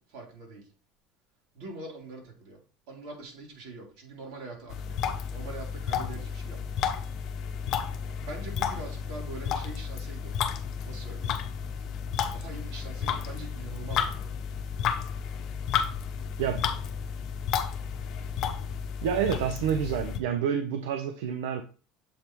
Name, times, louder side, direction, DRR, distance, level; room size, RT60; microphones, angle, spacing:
voice 1, 0.1-0.6 1.5-2.6 2.9-5.0 5.3-6.8 8.2-10.3 10.8-11.3 11.8-14.3, right 3 dB, 70° right, -1 dB, 3.2 m, -43 dB
sound 1, 4.7-20.2, left 7 dB, 55° left, 0.8 m, -32 dB
voice 2, 16.4-16.7 19.0-21.6, right 8 dB, 90° right, 7 dB, 0.6 m, -28 dB
7.3 x 3.4 x 4.5 m, 0.38 s
supercardioid pair, 115°, 0 cm